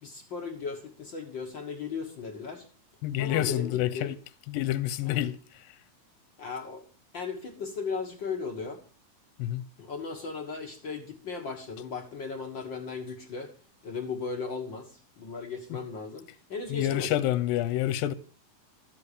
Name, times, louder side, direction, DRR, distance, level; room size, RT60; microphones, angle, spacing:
voice 1, 0.0-2.7 3.2-4.1 5.0-5.2 6.4-6.9 7.1-8.8 9.8-13.5 13.8-17.2, left 5 dB, 55° left, 1.3 m, -36 dB
voice 2, 3.0-4.1 4.5-5.4 9.4-9.6 15.7-15.8 16.7-18.1, left 13 dB, 75° left, 2.4 m, -28 dB
14.0 x 8.5 x 6.8 m
omnidirectional pair, 4.4 m